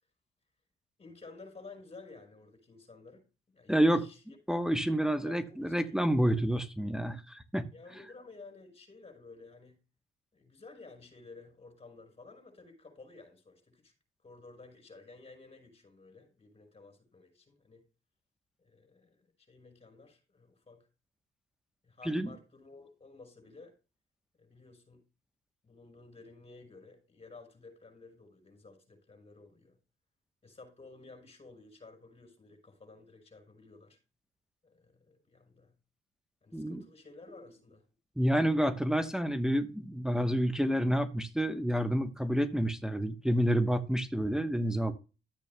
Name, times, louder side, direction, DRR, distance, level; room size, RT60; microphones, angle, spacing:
voice 1, 1.0-4.2 5.0-6.0 7.7-9.8 10.3-13.9 14.2-17.8 18.6-20.9 21.8-23.8 24.4-25.0 25.6-29.7 30.4-34.0 34.6-35.7 36.4-37.8, left 3 dB, 30° left, 5.6 m, -53 dB
voice 2, 3.7-4.0 4.5-7.7 22.0-22.3 36.5-36.8 38.2-44.9, equal, 5° right, 1.0 m, -29 dB
14.0 x 8.4 x 2.2 m
cardioid pair, 90°, 20 cm